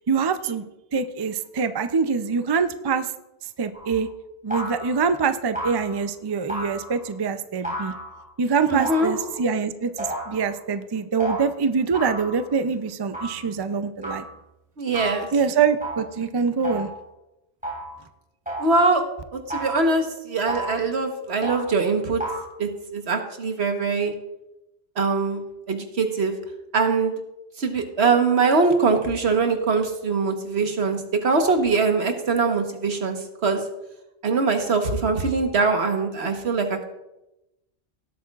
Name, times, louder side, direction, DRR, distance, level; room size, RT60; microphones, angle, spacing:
voice 1, 0.1-3.1 3.6-4.1 4.4-7.9 8.4-14.3 15.3-16.9, right 5 dB, 40° right, 10 dB, 0.3 m, -24 dB
sound 1, 3.7-4.0 4.5-5.1 5.6-6.0 6.5-7.1 7.6-8.3 8.8-9.5 10.0-10.5 11.2-11.4 11.9-12.5 13.1-13.4 14.0-14.4 14.9-15.3 15.8-16.2 16.6-17.1 17.6-18.0 18.5-18.9 19.5-20.0 20.5-20.9 21.4-21.7 22.2-22.5, right 1 dB, 5° right, 3.0 m, -32 dB
voice 2, 8.7-9.1 14.8-15.3 18.6-19.0 19.3-22.2 22.6-24.1 25.0-26.3 26.7-27.1 27.6-33.2 33.4-33.6 34.2-36.9, right 4 dB, 75° right, 5 dB, 1.5 m, -22 dB
17.5 x 8.4 x 2.4 m, 0.93 s
omnidirectional pair, 1.1 m